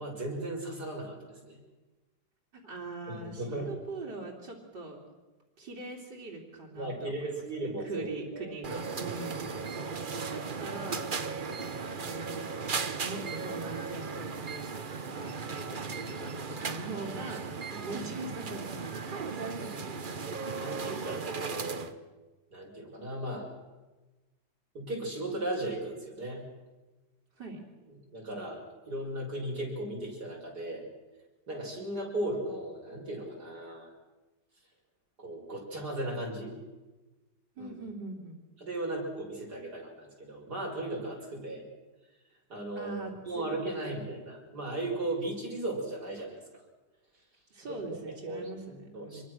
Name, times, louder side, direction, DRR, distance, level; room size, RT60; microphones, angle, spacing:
voice 1, 0.0-1.6 3.1-3.7 6.7-9.1 17.7-17.8 19.5-20.1 20.6-21.9 22.5-23.5 24.7-26.4 27.9-30.9 31.5-33.9 35.2-36.5 37.6-37.7 38.6-41.6 42.5-43.0 43.3-46.4 47.7-48.5 48.9-49.2, right 1 dB, 65° right, 0 dB, 6.2 m, -37 dB
voice 2, 2.5-5.0 5.6-9.5 10.3-11.1 12.0-20.3 27.4-27.6 37.6-38.4 42.8-43.4 44.0-44.1 47.5-49.2, right 2 dB, 90° right, -2 dB, 3.7 m, -42 dB
sound 1, 8.6-21.9, right 5 dB, 35° right, 1.0 m, -37 dB
26.0 x 22.5 x 6.3 m, 1.2 s
omnidirectional pair, 1.8 m